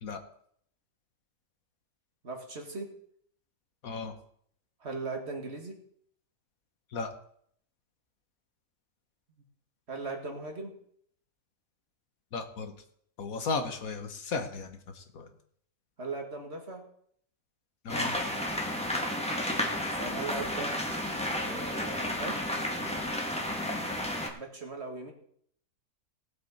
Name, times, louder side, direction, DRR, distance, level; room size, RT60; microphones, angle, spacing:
voice 1, 2.2-2.9 4.8-5.8 9.9-10.8 16.0-16.8 19.4-20.7 21.4-22.6 24.3-25.1, right 3 dB, 50° right, 3 dB, 2.1 m, -39 dB
voice 2, 3.8-4.1 6.9-7.1 12.3-12.7 13.2-15.3 17.8-18.1, left 4 dB, 75° left, 7 dB, 1.7 m, -35 dB
sound 1, 17.9-24.3, left 1 dB, 5° left, 1.5 m, -32 dB
18.0 x 7.8 x 4.2 m, 0.64 s
omnidirectional pair, 1.5 m